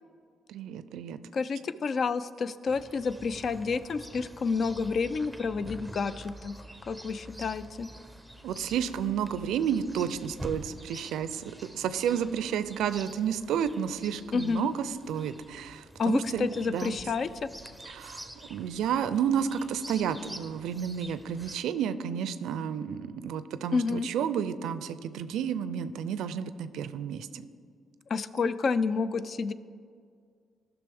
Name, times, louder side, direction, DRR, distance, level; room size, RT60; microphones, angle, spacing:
voice 1, 0.5-1.2 8.4-17.0 17.9-27.5, right 8 dB, 80° right, 13 dB, 0.4 m, -31 dB
voice 2, 1.3-6.5 6.9-7.9 14.3-14.7 16.0-17.5 23.7-24.1 28.1-29.5, left 4 dB, 50° left, 14 dB, 0.4 m, -29 dB
Chirp tweet, 2.7-21.6, right 1 dB, ahead, 0.7 m, -47 dB
14.5 x 6.1 x 3.5 m, 2.2 s
cardioid pair, 90°, 0 cm